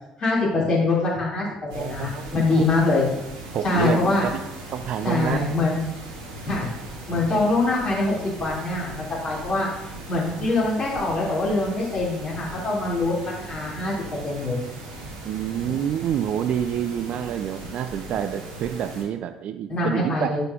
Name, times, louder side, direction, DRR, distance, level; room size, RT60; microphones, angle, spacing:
voice 1, 0.2-1.4 1.7-3.0 3.6-4.2 5.0-5.8 6.5-6.7 7.1-9.7 10.1-13.9 14.2-14.6 15.6-15.7 19.7-20.4, left 2 dB, 40° left, -5 dB, 2.8 m, -23 dB
voice 2, 1.7-2.7 3.5-5.4 15.2-20.4, right 9 dB, 50° right, 10 dB, 0.4 m, -28 dB
sound 1, 1.7-19.0, right 2 dB, 70° right, 1.0 m, -39 dB
7.9 x 6.6 x 2.6 m, 0.86 s
figure-of-eight pair, 50°, 3 cm